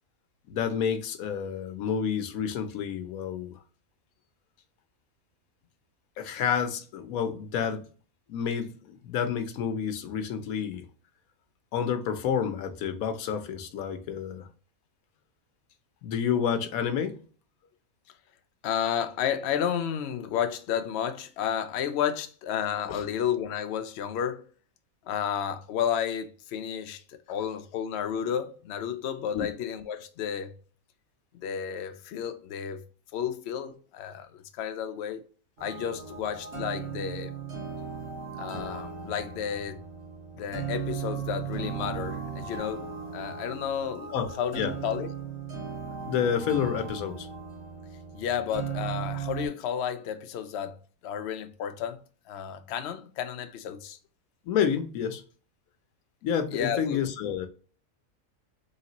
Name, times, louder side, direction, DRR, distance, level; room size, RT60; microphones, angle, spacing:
voice 1, 0.5-3.6 6.2-7.8 8.3-10.9 11.7-14.5 16.0-17.2 22.9-23.0 29.3-29.5 44.1-44.3 44.6-44.7 46.1-47.3 54.5-55.2 56.2-57.5, left 7 dB, 80° left, 1.1 m, -29 dB
voice 2, 18.6-24.4 25.1-30.5 31.4-32.8 33.1-35.3 35.6-37.3 38.4-39.8 40.3-45.1 48.1-52.0 52.3-54.0 56.5-57.0, left 8 dB, 65° left, 0.7 m, -32 dB
sound 1, 35.6-49.5, right 6 dB, 55° right, 1.9 m, -37 dB
4.0 x 3.2 x 2.8 m
omnidirectional pair, 1.5 m